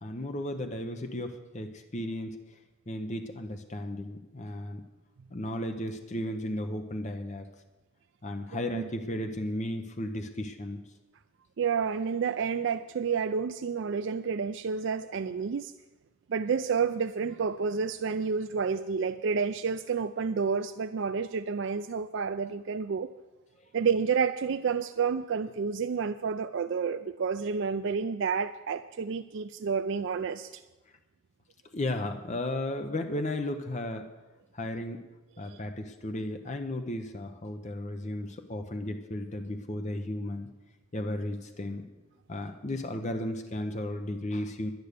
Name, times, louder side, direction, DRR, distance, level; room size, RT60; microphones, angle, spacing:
voice 1, 0.0-2.3 2.9-4.8 5.3-7.5 8.2-10.8 31.7-34.1 34.5-35.0 35.4-40.5 40.9-41.9 42.3-44.7, left 1 dB, 35° left, 6 dB, 0.8 m, -34 dB
voice 2, 8.5-8.9 11.6-15.7 16.3-23.1 23.7-30.6 35.4-35.6, right 6 dB, 55° right, 10 dB, 0.4 m, -30 dB
11.0 x 10.5 x 6.7 m, 1.1 s
head